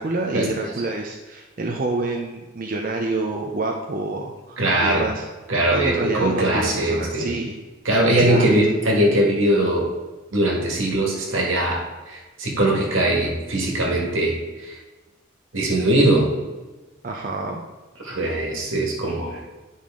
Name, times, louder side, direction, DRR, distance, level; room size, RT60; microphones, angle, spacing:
voice 1, 0.0-5.2 5.7-7.6 8.1-8.5 17.0-17.6, right 2 dB, 45° right, 1 dB, 0.6 m, -27 dB
voice 2, 4.6-5.1 5.5-7.3 7.9-9.9 10.3-14.7 15.5-16.3 18.0-19.4, right 1 dB, 80° right, -1 dB, 1.8 m, -21 dB
10.0 x 5.5 x 3.7 m, 1.2 s
head